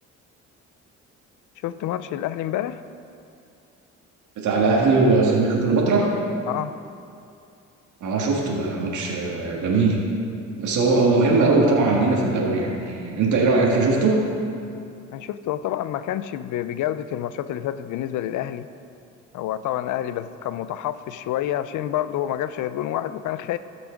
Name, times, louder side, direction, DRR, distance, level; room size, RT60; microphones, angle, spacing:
voice 1, 1.6-2.8 6.5-6.8 15.1-18.7 19.3-23.6, left 12 dB, 75° left, 14 dB, 0.5 m, -28 dB
voice 2, 4.4-6.1 8.0-10.0 10.6-14.3, right 3 dB, 75° right, -2 dB, 1.9 m, -20 dB
16.5 x 6.1 x 5.2 m, 2.5 s
cardioid pair, 90°, 30 cm